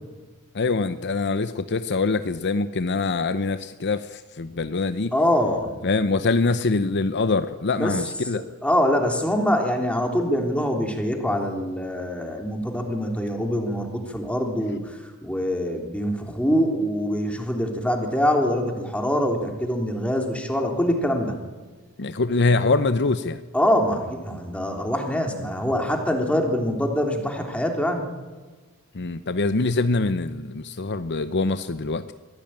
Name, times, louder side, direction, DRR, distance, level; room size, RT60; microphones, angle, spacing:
voice 1, 0.5-5.1 5.8-8.4 22.0-23.4 28.9-32.1, left 3 dB, 55° left, 11 dB, 0.8 m, -24 dB
voice 2, 5.1-5.7 7.7-8.0 8.3-21.4 23.5-28.1, equal, 5° left, 2 dB, 3.3 m, -24 dB
23.5 x 16.0 x 8.9 m, 1.3 s
head